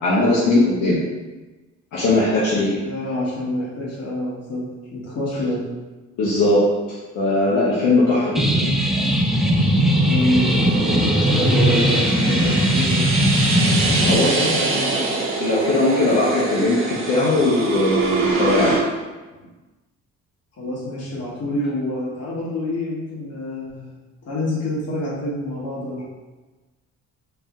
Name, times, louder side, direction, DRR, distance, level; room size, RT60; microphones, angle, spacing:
voice 1, 0.0-1.0 1.9-2.8 6.2-6.6 7.1-8.7 14.0-14.4 15.4-18.8, left 2 dB, 75° left, -7 dB, 0.9 m, -19 dB
voice 2, 2.7-4.6 4.9-5.6 10.0-10.7 11.2-13.1 13.8-15.1 20.5-23.9 24.2-26.0, left 1 dB, 55° left, -6 dB, 1.5 m, -26 dB
sound 1, 8.3-14.1, equal, ahead, 0.4 m, -19 dB
sound 2, 8.7-18.8, right 3 dB, 45° right, 0.8 m, -25 dB
3.3 x 2.6 x 3.6 m, 1.2 s
cardioid pair, 90°, 30 cm